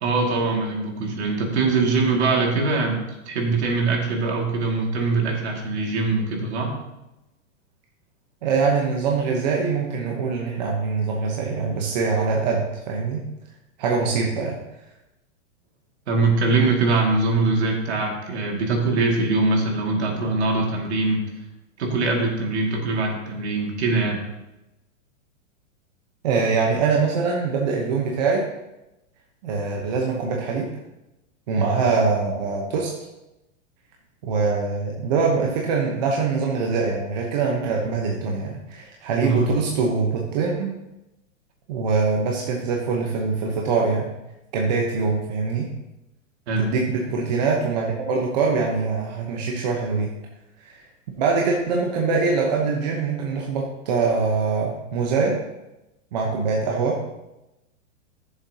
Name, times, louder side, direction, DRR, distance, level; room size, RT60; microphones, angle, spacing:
voice 1, 0.0-3.0 3.3-6.7 16.1-21.2 21.8-24.2 39.2-39.5 46.5-46.7, right 3 dB, 60° right, 0 dB, 2.2 m, -22 dB
voice 2, 8.4-13.2 13.8-14.6 26.2-28.4 29.4-30.7 31.5-32.9 34.2-40.7 41.7-44.1 44.5-45.7 46.6-50.1 50.6-50.8 51.2-55.4 56.1-57.0, right 4 dB, 35° right, -1 dB, 0.9 m, -23 dB
13.0 x 7.2 x 2.8 m, 0.95 s
supercardioid pair, 180°, 37 cm